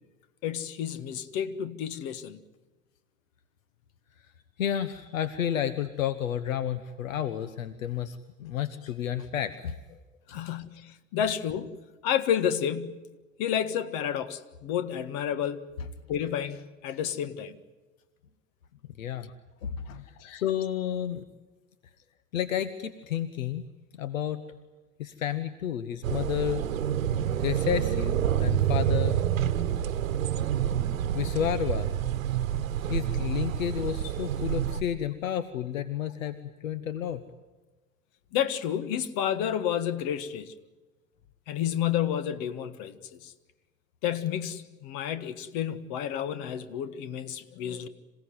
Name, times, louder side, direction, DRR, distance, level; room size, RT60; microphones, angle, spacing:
voice 1, 0.4-2.4 10.3-13.1 13.4-15.6 16.1-17.6 20.2-20.4 38.3-40.5 41.5-43.0 43.2-43.3 44.0-47.9, left 9 dB, 60° left, 1.6 m, -30 dB
voice 2, 4.6-9.8 10.3-10.4 19.0-19.3 19.6-21.2 22.3-23.6 24.0-24.4 25.0-26.6 27.4-29.2 31.1-31.9 32.9-36.4 36.6-37.2, left 10 dB, 80° left, 1.0 m, -31 dB
sound 1, 26.0-34.8, right 10 dB, 85° right, 1.0 m, -28 dB
27.0 x 17.0 x 9.4 m
hypercardioid pair, 70°, 39 cm